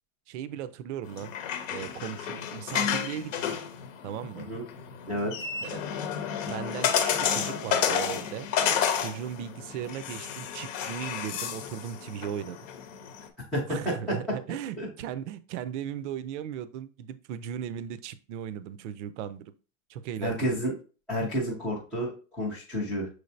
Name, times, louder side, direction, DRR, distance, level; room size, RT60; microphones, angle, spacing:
voice 1, 0.3-1.3 1.7-3.6 4.0-4.5 5.6-6.1 6.4-6.9 7.2-8.5 9.0-12.6 13.7-19.5 19.9-20.6, right 9 dB, 60° right, 13 dB, 0.5 m, -37 dB
sound 1, 1.1-13.3, left 8 dB, 70° left, 0.9 m, -31 dB
voice 2, 13.5-14.2 14.8-14.9 20.2-20.7 21.1-23.1, equal, ahead, -11 dB, 0.3 m, -30 dB
6.2 x 3.2 x 2.6 m, 0.36 s
supercardioid pair, 170°, 40 cm